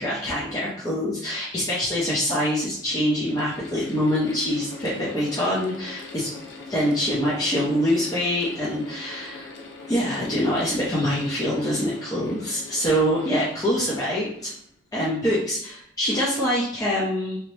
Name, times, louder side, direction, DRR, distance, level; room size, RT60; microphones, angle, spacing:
voice 1, 0.0-6.3 6.7-9.5 9.9-14.5 14.9-17.4, equal, 20° left, -7 dB, 0.6 m, -25 dB
Mechanical fan, 1.5-1.6 2.5-15.1, left 3 dB, 90° left, 0.5 m, -42 dB
2.8 x 2.1 x 3.0 m, 0.66 s
head